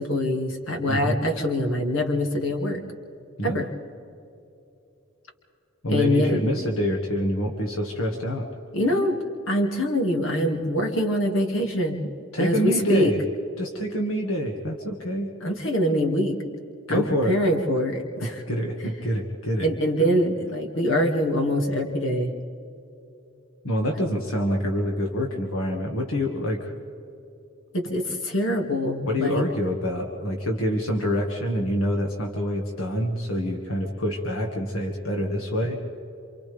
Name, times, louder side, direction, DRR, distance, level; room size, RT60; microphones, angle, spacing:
voice 1, 0.0-2.8 3.4-3.7 5.9-6.4 8.7-9.2 9.5-12.1 12.4-13.1 15.4-16.6 16.9-18.4 19.6-22.3 27.7-29.4, equal, 65° left, 3 dB, 2.4 m, -24 dB
voice 2, 0.9-1.2 3.4-3.7 5.8-8.5 12.3-13.2 13.6-15.3 16.9-17.4 18.5-19.7 23.6-26.7 29.1-35.8, equal, 80° left, 1 dB, 1.9 m, -26 dB
28.0 x 27.0 x 3.5 m, 2.8 s
head